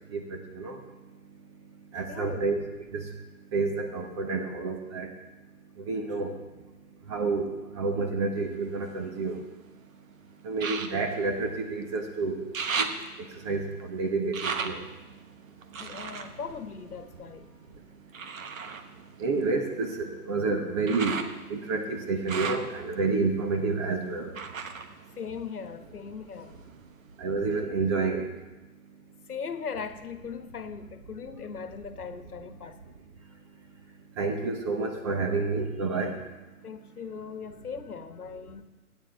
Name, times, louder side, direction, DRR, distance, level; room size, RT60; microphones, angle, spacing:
voice 1, 0.1-0.8 1.9-2.6 2.9-3.2 3.5-5.1 5.8-6.4 7.1-9.4 10.4-12.9 13.2-14.8 19.2-24.4 27.2-28.3 34.2-36.2, right 3 dB, 20° right, 0.8 m, -29 dB
voice 2, 2.1-2.5 15.8-17.5 25.2-26.5 29.3-32.8 36.6-38.6, left 6 dB, 80° left, 1.3 m, -39 dB
sound 1, 8.4-9.7 10.5-12.1 12.3-17.5 18.1-26.0 26.3-27.1 27.6-27.7, right 5 dB, 60° right, 1.2 m, -37 dB
14.0 x 9.8 x 4.5 m
hypercardioid pair, 150°, 45 cm